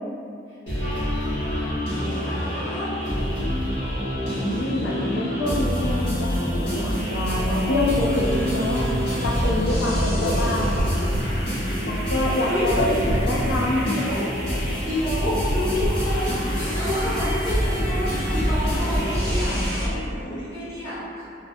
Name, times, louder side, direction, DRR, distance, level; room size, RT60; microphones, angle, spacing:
sound 1, 0.7-19.9, equal, 60° left, 1.0 m, -26 dB
voice 1, 0.7-3.3 3.6-3.7 10.1-10.5 12.4-13.3 13.8-14.2 14.8-21.2, left 1 dB, 30° left, -15 dB, 1.3 m, -29 dB
voice 2, 4.3-8.8 9.2-10.9 11.9-12.9 13.2-14.0, left 1 dB, 80° left, -3 dB, 0.4 m, -26 dB
sound 2, 10.8-11.4 13.1-13.7 15.5-16.0, right 1 dB, 70° right, 0.4 m, -27 dB
2.2 x 2.2 x 2.5 m, 2.5 s
head